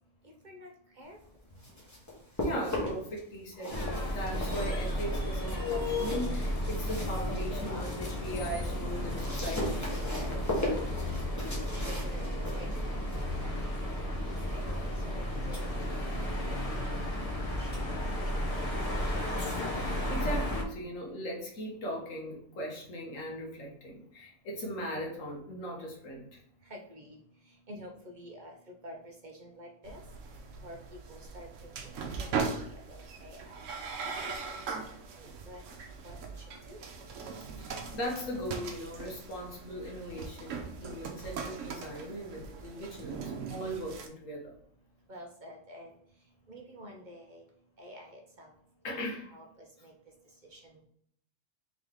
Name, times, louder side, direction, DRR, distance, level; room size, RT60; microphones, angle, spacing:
sound 1, 1.4-3.2 3.5-7.9 8.3-14.9, left 1 dB, 15° left, 1.1 m, -38 dB
voice 1, 2.4-10.5 14.6-14.8 17.1-17.3 19.6-26.4 34.7-34.8 37.6-44.5 48.8-49.3, equal, 90° left, -1 dB, 1.5 m, -39 dB
sound 2, 3.7-20.6, left 1 dB, 30° left, 0.9 m, -33 dB
voice 2, 11.7-13.0 13.4-13.5 14.0-14.1 14.5-15.7 16.1-16.8 17.5-17.8 18.6-19.1 26.7-27.2 27.7-30.0 30.6-32.3 32.6-33.6 34.0-34.6 35.2-35.6 36.0-36.2 36.7-36.9 45.1-45.9 46.5-47.4 47.8-48.5 48.9-49.0 49.2-49.9 50.5-50.8, equal, 45° right, 1 dB, 0.8 m, -49 dB
sound 3, 29.8-44.1, right 5 dB, 80° right, 1.0 m, -40 dB
3.7 x 3.7 x 3.5 m, 0.66 s
omnidirectional pair, 1.3 m